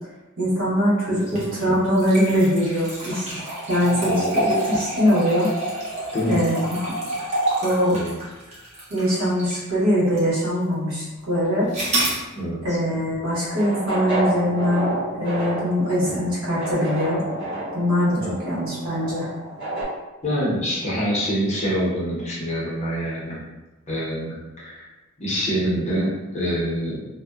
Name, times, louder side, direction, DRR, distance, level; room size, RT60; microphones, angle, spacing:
voice 1, 0.4-3.4 3.7-5.5 6.3-6.9 7.6-8.0 8.9-11.7 12.6-14.9 15.2-17.2 17.7-18.2 18.4-19.3, equal, 90° right, -8 dB, 1.1 m, -22 dB
voice 2, 1.1-1.8 3.8-4.3 6.1-6.4 7.9-8.1 12.3-12.6 16.0-16.3 18.1-18.4 20.2-23.4 23.9-24.8 25.2-27.0, equal, 30° left, -7 dB, 0.7 m, -26 dB
sound 1, 1.2-9.7 10.2-10.3 11.7-12.2, right 1 dB, 30° right, 0.7 m, -27 dB
sound 2, 13.2-19.8, right 1 dB, 55° right, 1.1 m, -30 dB
2.5 x 2.1 x 2.3 m, 1.1 s
head